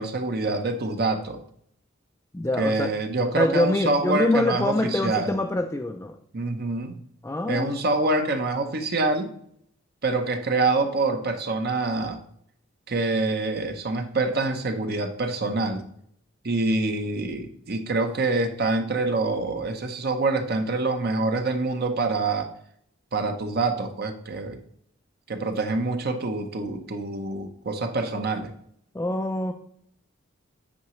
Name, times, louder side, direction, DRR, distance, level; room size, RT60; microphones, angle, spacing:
voice 1, 0.0-1.4 2.6-5.4 6.3-7.0 7.5-9.3 10.0-12.2 12.9-15.8 16.4-22.5 23.1-24.6 25.3-28.5, right 3 dB, 55° right, 6 dB, 0.8 m, -26 dB
voice 2, 2.3-2.9 3.3-6.2 7.2-7.8 28.9-29.5, left 1 dB, 15° left, 4 dB, 0.4 m, -25 dB
8.6 x 4.8 x 3.1 m, 0.68 s
head